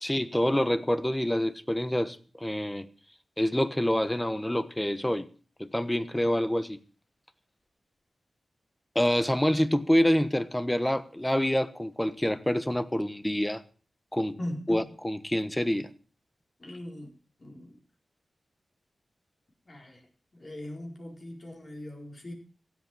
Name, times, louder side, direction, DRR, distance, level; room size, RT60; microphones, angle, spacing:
voice 1, 0.0-2.9 3.4-5.3 5.6-6.8 8.9-13.6 14.1-14.4 14.7-15.9, left 1 dB, 10° left, 1.2 m, -27 dB
voice 2, 14.4-14.9 16.6-17.1 17.4-17.8 19.7-20.0 20.3-22.3, left 1 dB, 40° left, 4.5 m, -40 dB
15.5 x 8.3 x 7.6 m
cardioid pair, 75°, 0 cm